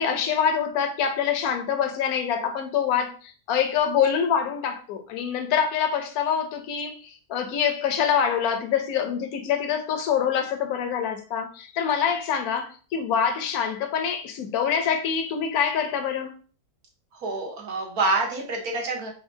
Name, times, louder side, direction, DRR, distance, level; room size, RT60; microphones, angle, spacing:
voice 1, 0.0-16.3, left 7 dB, 75° left, 1.1 m, -25 dB
voice 2, 17.1-19.1, right 2 dB, 75° right, 1.6 m, -27 dB
4.9 x 3.3 x 2.7 m
omnidirectional pair, 1.6 m